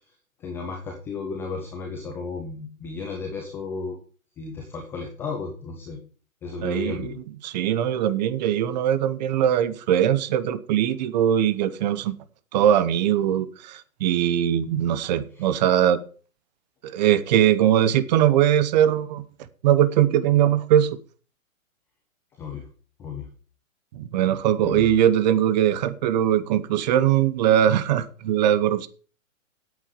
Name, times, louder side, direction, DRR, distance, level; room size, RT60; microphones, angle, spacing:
voice 1, 0.4-4.0 4.4-6.0 6.4-7.2 15.3-15.5 22.3-22.7 23.0-23.3 24.6-24.9, left 4 dB, 5° left, 2 dB, 0.5 m, -34 dB
voice 2, 6.6-7.1 7.4-12.2 12.5-16.0 16.8-19.2 19.6-20.9 23.9-28.9, right 10 dB, 30° right, 15 dB, 0.9 m, -21 dB
8.4 x 8.4 x 5.6 m, 0.39 s
hypercardioid pair, 145°, 40 cm